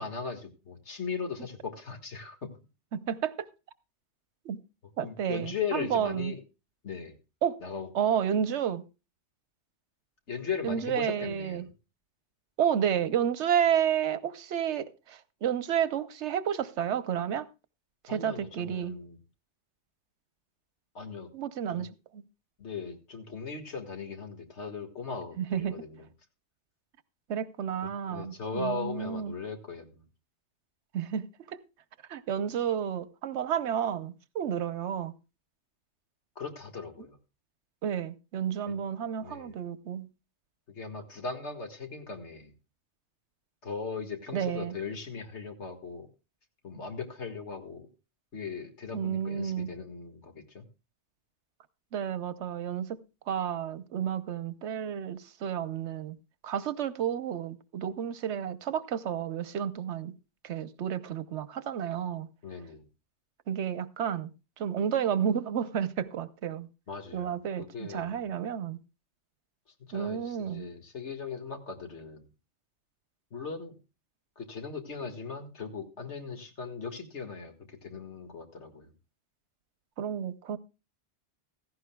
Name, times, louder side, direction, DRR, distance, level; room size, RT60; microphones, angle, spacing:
voice 1, 0.0-2.4 5.0-6.4 6.8-7.2 7.6-7.9 10.3-11.7 18.1-19.2 21.0-21.3 21.7-21.9 22.6-26.1 28.1-30.0 36.4-37.2 38.7-38.8 39.2-39.5 40.7-42.5 43.6-46.1 46.6-47.9 48.3-50.7 62.4-62.8 66.9-68.3 69.9-72.2 73.3-73.8 74.4-77.5 77.8-78.9, left 5 dB, 80° left, 2.1 m, -38 dB
voice 2, 2.9-3.5 4.4-4.6 5.0-6.3 7.4-7.6 7.9-8.8 10.6-11.7 12.6-17.5 18.0-19.0 21.3-21.9 22.1-22.2 25.4-25.8 27.3-29.3 30.9-31.6 32.1-35.1 37.8-40.1 44.3-44.8 48.9-49.7 51.9-53.0 53.3-56.2 56.4-60.1 60.4-62.3 63.5-64.3 64.6-66.7 67.1-68.8 69.9-70.7 80.0-80.6, right 9 dB, 85° right, 1.1 m, -31 dB
16.0 x 14.5 x 2.2 m
omnidirectional pair, 1.2 m